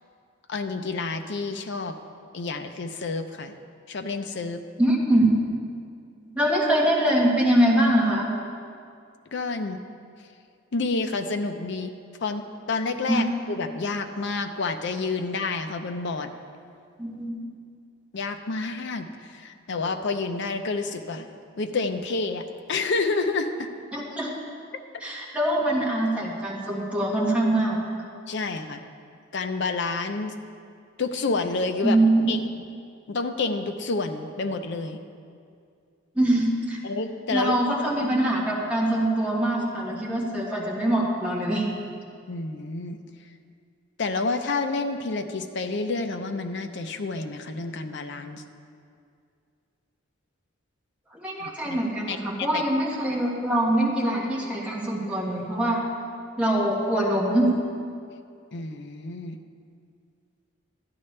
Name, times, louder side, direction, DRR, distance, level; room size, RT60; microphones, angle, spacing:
voice 1, 0.5-2.0 2.3-3.5 3.9-4.6 9.3-9.8 10.7-11.9 12.2-16.3 18.1-21.3 21.6-23.7 28.3-28.8 29.3-30.3 31.0-32.0 32.3-32.4 33.1-35.0 36.8-37.6 42.3-43.0 44.0-48.4 51.4-51.8 52.1-52.6 58.5-59.4, left 3 dB, 60° left, 7 dB, 0.6 m, -29 dB
voice 2, 4.8-5.3 6.3-8.3 13.1-13.2 17.0-17.5 23.9-24.3 25.0-27.8 31.8-32.4 36.2-36.8 37.3-41.7 51.2-55.8 56.4-57.5, right 1 dB, 5° right, -5 dB, 1.6 m, -23 dB
12.5 x 10.5 x 3.3 m, 2.4 s
head